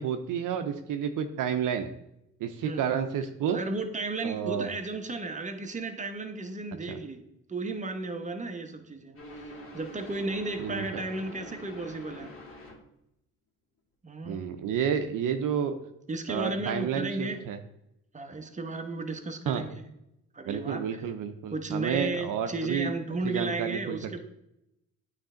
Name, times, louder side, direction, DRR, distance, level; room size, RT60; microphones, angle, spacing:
voice 1, 0.0-1.9 2.4-3.6 4.2-4.7 6.9-7.0 10.6-11.0 14.2-15.7 16.3-17.6 19.5-19.7 20.5-22.9 23.2-24.0, right 8 dB, 65° right, 8 dB, 0.6 m, -30 dB
voice 2, 3.5-7.2 7.5-12.3 14.0-14.4 16.1-17.4 18.1-19.8 20.3-21.0 21.5-24.2, right 2 dB, 20° right, 5 dB, 1.0 m, -34 dB
sound 1, 9.2-12.8, left 1 dB, 40° left, 2.0 m, -45 dB
8.8 x 3.3 x 3.8 m, 0.82 s
supercardioid pair, 65°, 34 cm